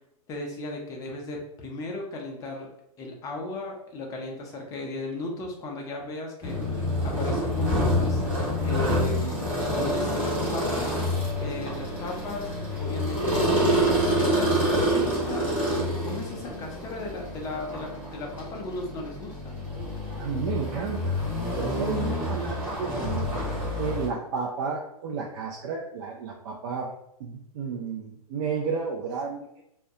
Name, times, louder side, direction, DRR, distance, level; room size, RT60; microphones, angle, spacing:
voice 1, 0.3-2.7 3.0-6.6 7.0-8.2 8.6-10.9 11.4-19.6, left 2 dB, 15° left, 1 dB, 0.5 m, -36 dB
sound 1, 6.4-24.1, equal, 10° right, 1.4 m, -27 dB
voice 2, 20.2-21.2 21.5-26.9 27.2-29.5, right 5 dB, 45° right, -1 dB, 0.4 m, -32 dB
2.2 x 2.1 x 2.7 m, 0.78 s
hypercardioid pair, 135°, 20 cm